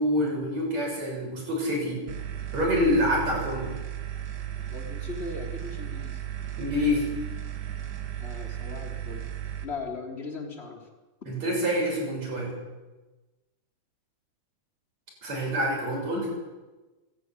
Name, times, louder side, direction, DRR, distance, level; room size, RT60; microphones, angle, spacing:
voice 1, 0.0-2.0 2.5-3.7 6.6-7.1 11.3-12.5 15.2-16.3, equal, 35° right, -1 dB, 8.0 m, -26 dB
sound 1, 2.1-9.6, right 10 dB, 85° right, 4.0 m, -35 dB
voice 2, 4.7-6.2 8.1-9.3 9.6-10.9, left 4 dB, 15° left, 2 dB, 2.7 m, -38 dB
25.0 x 12.5 x 9.7 m, 1.2 s
omnidirectional pair, 5.1 m